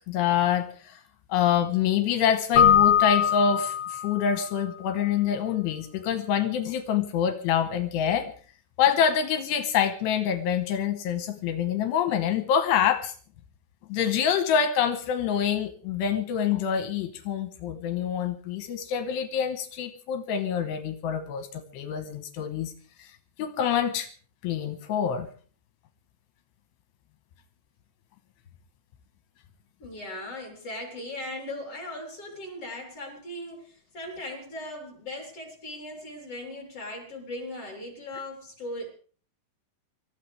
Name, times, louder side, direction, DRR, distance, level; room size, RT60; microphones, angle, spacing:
voice 1, 0.1-1.0 1.3-8.3 8.8-13.1 13.9-22.7 23.0-23.1 23.4-24.1 24.4-25.3, left 8 dB, 80° left, 7 dB, 3.2 m, -26 dB
Keyboard (musical), 2.6-4.4, left 9 dB, 60° left, 2.9 m, -21 dB
voice 2, 29.8-38.9, left 1 dB, 35° left, 1 dB, 4.1 m, -38 dB
26.0 x 14.5 x 3.3 m, 0.41 s
omnidirectional pair, 4.9 m